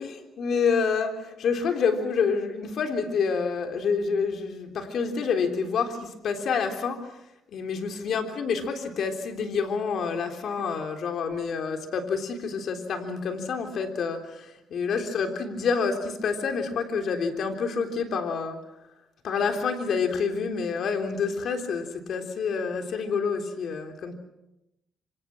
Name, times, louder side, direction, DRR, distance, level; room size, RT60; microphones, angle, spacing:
voice 1, 0.0-7.1 7.5-18.6 19.2-24.1, left 5 dB, 65° left, 6 dB, 3.6 m, -28 dB
26.5 x 26.0 x 6.1 m, 0.88 s
cardioid pair, 90°, 0 cm